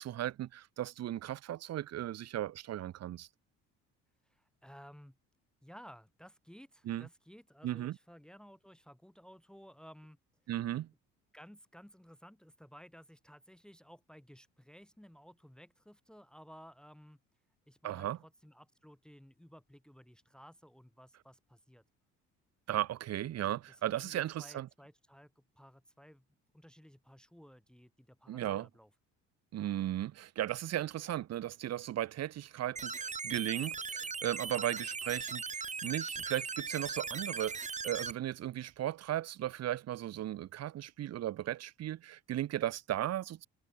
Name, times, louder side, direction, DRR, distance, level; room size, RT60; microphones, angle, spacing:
voice 1, 0.0-3.3 6.9-7.1 7.6-8.0 10.5-10.9 17.8-18.2 22.7-24.7 28.3-28.7 29.5-43.5, right 12 dB, 50° right, 1.1 m, -36 dB
voice 2, 4.2-5.2 5.6-10.2 11.3-17.2 17.7-21.8 23.4-26.2 26.5-28.9, equal, ahead, 1.9 m, -56 dB
sound 1, 32.8-38.1, right 5 dB, 20° right, 1.1 m, -39 dB
supercardioid pair, 95°, 32 cm